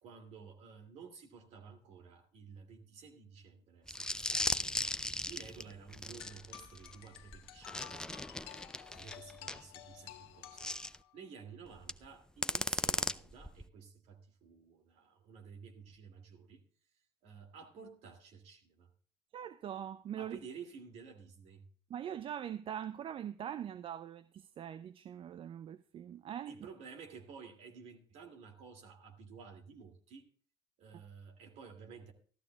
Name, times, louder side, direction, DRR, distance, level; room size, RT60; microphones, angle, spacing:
voice 1, 0.0-4.8 5.2-8.2 8.9-10.7 11.1-16.6 17.2-18.9 20.2-21.6 26.5-30.3 30.8-32.1, right 6 dB, 60° right, 2.5 m, -53 dB
sound 1, 3.9-9.6 10.6-11.0 11.8-12.1 12.4-13.7, left 1 dB, 5° left, 0.4 m, -37 dB
sound 2, 6.2-11.2, left 13 dB, 80° left, 0.8 m, -53 dB
voice 2, 19.3-20.4 21.9-26.6, right 10 dB, 45° right, 0.6 m, -42 dB
15.5 x 13.5 x 2.3 m
hypercardioid pair, 65°, 13 cm